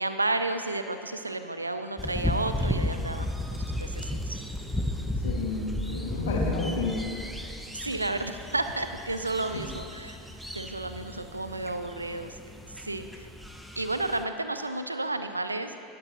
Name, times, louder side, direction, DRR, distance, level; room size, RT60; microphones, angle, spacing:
voice 1, 0.0-4.4 7.7-10.2 10.5-12.4 12.8-13.3 13.8-15.8, right 2 dB, 85° right, 9 dB, 0.4 m, -32 dB
sound 1, 2.0-14.2, left 1 dB, ahead, 0.7 m, -34 dB
voice 2, 5.0-7.0 9.5-9.6, left 3 dB, 65° left, -2 dB, 1.9 m, -31 dB
18.5 x 7.5 x 2.9 m, 2.5 s
figure-of-eight pair, 80°, 0 cm